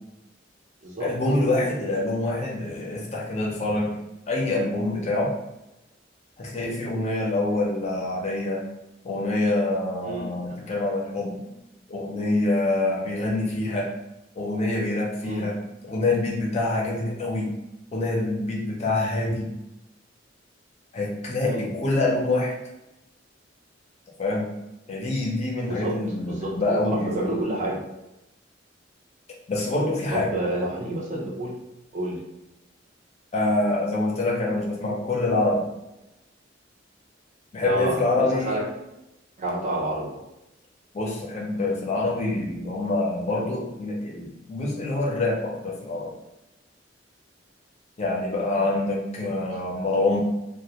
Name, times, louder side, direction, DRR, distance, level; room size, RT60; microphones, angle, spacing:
voice 1, 1.0-3.9 4.3-5.3 6.4-8.6 9.0-11.5 11.9-13.9 14.4-15.6 15.8-17.5 17.9-19.5 20.9-22.5 24.2-24.5 24.9-27.4 29.5-30.4 33.3-35.7 37.5-38.6 40.9-46.1 48.0-50.2, left 2 dB, 35° left, -2 dB, 0.5 m, -26 dB
voice 2, 10.0-10.5 15.2-15.5 21.4-21.7 25.7-25.9 26.2-27.8 30.1-31.6 31.9-32.2 37.6-38.6 39.4-40.1 49.2-49.3, right 1 dB, 40° right, -3 dB, 0.5 m, -29 dB
2.1 x 2.1 x 2.8 m, 0.93 s
head